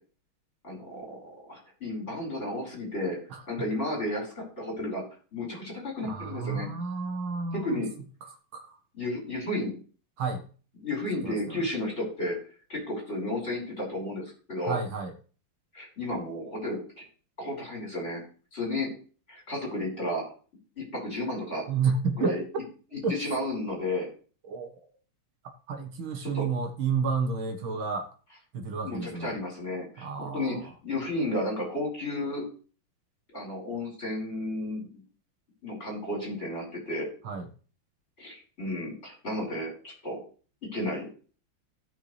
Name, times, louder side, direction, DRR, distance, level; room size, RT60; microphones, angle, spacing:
voice 1, 0.6-3.2 3.5-5.0 5.3-6.7 7.5-7.9 8.9-9.7 10.8-12.3 12.7-14.2 14.5-14.8 15.7-17.0 17.4-18.2 18.5-18.9 19.3-20.2 20.8-21.6 22.2-22.4 23.2-24.1 26.2-26.5 28.8-32.4 33.3-34.9 35.6-37.1 38.2-40.2 40.7-41.1, left 1 dB, 30° left, -2 dB, 5.1 m, -32 dB
voice 2, 6.0-7.8 8.5-8.8 10.2-10.4 11.2-11.6 14.7-15.1 21.7-22.4 23.0-23.1 24.5-24.7 25.7-28.1 28.5-29.3 30.0-30.6 37.2-37.5, right 5 dB, 70° right, 4 dB, 2.2 m, -30 dB
16.0 x 5.9 x 3.3 m, 0.38 s
omnidirectional pair, 2.3 m